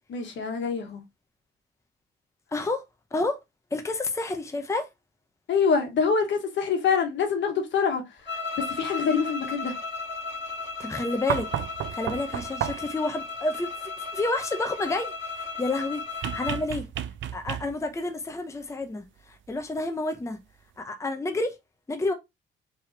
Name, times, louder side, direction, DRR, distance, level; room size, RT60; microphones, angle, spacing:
voice 1, 0.1-1.0 5.5-9.8, left 6 dB, 70° left, 1.4 m, -26 dB
voice 2, 2.5-3.4 3.7-4.9 10.8-11.5 11.9-16.9 17.3-20.4 20.8-21.5 21.9-22.1, left 2 dB, 15° left, 0.8 m, -30 dB
sound 1, 8.3-16.7, left 4 dB, 15° right, 2.9 m, -35 dB
sound 2, 11.3-13.0 16.2-18.0 19.5-19.6, right 11 dB, 70° right, 0.5 m, -32 dB
4.6 x 3.5 x 2.7 m
cardioid pair, 90°, 20 cm